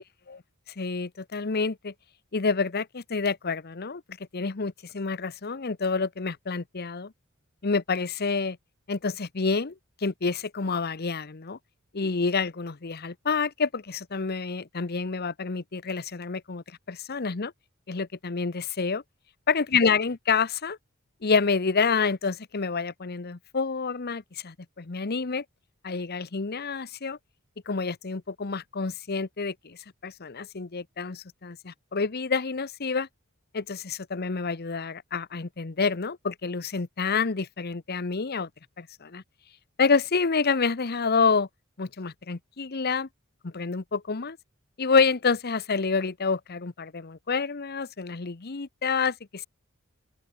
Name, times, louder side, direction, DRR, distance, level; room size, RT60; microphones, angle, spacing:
voice 1, 0.8-1.9 2.3-4.0 4.3-7.1 7.6-8.6 8.9-9.7 10.0-11.6 11.9-17.5 17.9-19.0 19.5-20.8 21.2-25.4 25.8-27.2 27.7-29.8 30.0-33.1 33.5-38.5 38.8-39.2 39.8-41.5 41.8-43.1 43.4-44.4 44.8-49.5, left 4 dB, 50° left, 0.9 m, -28 dB
open air
head